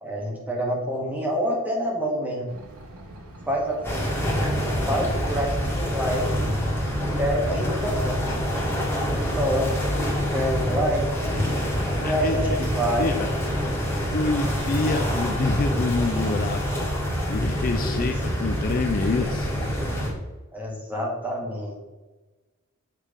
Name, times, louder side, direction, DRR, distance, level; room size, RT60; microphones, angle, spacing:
voice 1, 0.0-2.5 3.5-4.1 4.9-6.4 7.0-8.2 9.2-11.4 12.0-13.2 13.6-13.7 17.7-18.1 20.5-21.8, equal, 10° right, -3 dB, 1.5 m, -27 dB
sound 1, 2.5-10.2, right 1 dB, 85° right, 1.1 m, -44 dB
sound 2, 3.8-20.1, equal, 10° left, 1.6 m, -26 dB
voice 2, 12.0-12.7 13.0-13.3 14.1-19.5, left 3 dB, 40° left, 5 dB, 0.4 m, -27 dB
7.4 x 3.4 x 5.1 m, 1.2 s
head